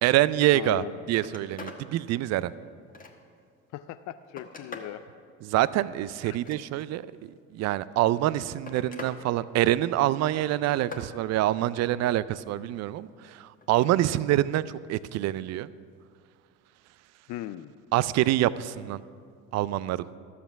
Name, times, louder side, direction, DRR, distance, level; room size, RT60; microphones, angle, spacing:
voice 1, 0.0-0.8 1.1-2.5 5.4-13.1 13.4-14.6 14.9-15.7 17.9-19.0 19.5-20.0, right 14 dB, 40° right, 18 dB, 0.4 m, -26 dB
voice 2, 0.5-1.0 3.7-5.0 6.2-6.4 17.3-17.7, left 13 dB, 45° left, 12 dB, 0.4 m, -38 dB
Telephone, 0.6-0.7 1.0-1.8 2.3-3.4 4.0-5.0 6.2-7.0 8.0-9.2 9.5-10.0 10.4-11.1 13.6-13.9 15.3-15.5, left 3 dB, 20° left, 1.3 m, -44 dB
12.5 x 7.0 x 5.9 m, 2.2 s
hypercardioid pair, 65°, 41 cm